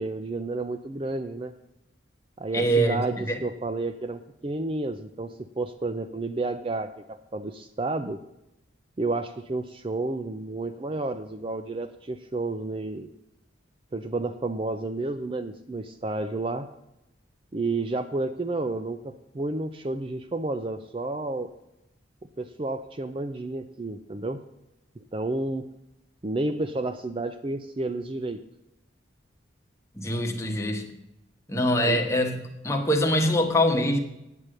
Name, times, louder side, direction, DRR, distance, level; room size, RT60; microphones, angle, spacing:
voice 1, 0.0-1.5 2.4-8.2 9.0-13.1 13.9-16.7 17.5-21.5 22.4-24.4 25.0-25.7 26.2-28.4 31.8-32.0, right 2 dB, 25° right, 10 dB, 0.4 m, -31 dB
voice 2, 2.5-3.0 3.3-3.4 30.0-30.9 31.5-34.0, equal, 15° left, 2 dB, 1.2 m, -24 dB
9.0 x 8.3 x 6.4 m, 0.88 s
head